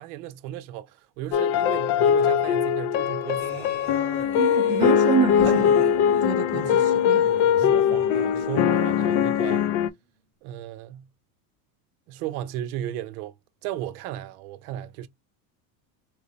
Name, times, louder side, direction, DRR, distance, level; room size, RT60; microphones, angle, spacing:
voice 1, 0.0-3.7 7.6-9.7 10.4-11.1 12.1-13.3 13.6-15.1, right 12 dB, 75° right, 0.7 m, -35 dB
sound 1, 1.3-9.9, left 9 dB, 60° left, 0.5 m, -21 dB
sound 2, 3.4-9.9, right 1 dB, 5° left, 1.0 m, -39 dB
voice 2, 4.3-5.8 6.2-7.3, right 9 dB, 20° right, 0.3 m, -27 dB
4.5 x 2.0 x 2.8 m
supercardioid pair, 145°, 45 cm